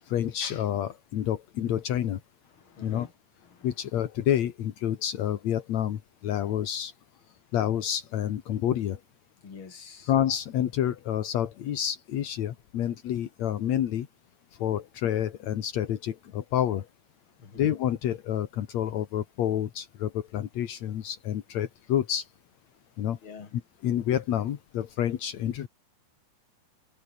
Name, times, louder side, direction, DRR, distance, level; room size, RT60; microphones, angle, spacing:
voice 1, 0.1-2.2 2.8-3.1 3.6-6.9 7.5-9.0 10.1-14.1 14.6-16.9 17.5-22.3 23.0-23.2 23.8-25.7, left 10 dB, 60° left, 1.8 m, -28 dB
voice 2, 2.5-3.1 3.4-3.7 9.4-10.1 17.4-17.7 23.2-23.5, left 5 dB, 30° left, 3.3 m, -46 dB
omnidirectional pair, 5.1 m